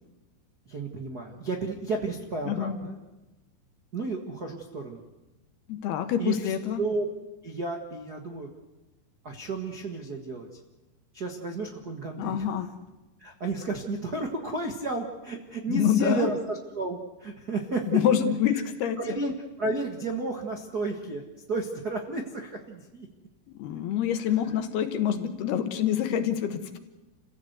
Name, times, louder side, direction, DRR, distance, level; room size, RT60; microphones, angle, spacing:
voice 1, 0.7-3.0 3.9-5.0 6.2-7.0 7.4-8.5 9.2-10.5 11.1-12.5 13.2-17.9 19.0-21.2 21.5-23.1, right 3 dB, 80° right, 3 dB, 0.8 m, -32 dB
voice 2, 2.5-2.8 5.7-6.8 12.2-12.7 15.7-16.3 17.9-19.0 23.5-26.8, left 9 dB, 70° left, 8 dB, 3.1 m, -26 dB
28.5 x 16.0 x 8.1 m, 1.1 s
omnidirectional pair, 4.9 m